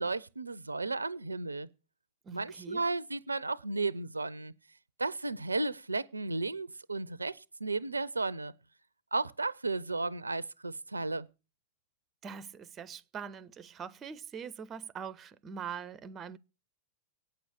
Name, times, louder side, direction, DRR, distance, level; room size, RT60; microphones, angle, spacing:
voice 1, 0.0-1.7 2.3-4.5 5.0-8.5 9.1-11.3, right 3 dB, 80° right, 0.5 m, -34 dB
voice 2, 2.3-2.8 12.2-16.4, right 7 dB, 25° right, 0.5 m, -43 dB
9.1 x 6.8 x 8.0 m
figure-of-eight pair, 95°, 0 cm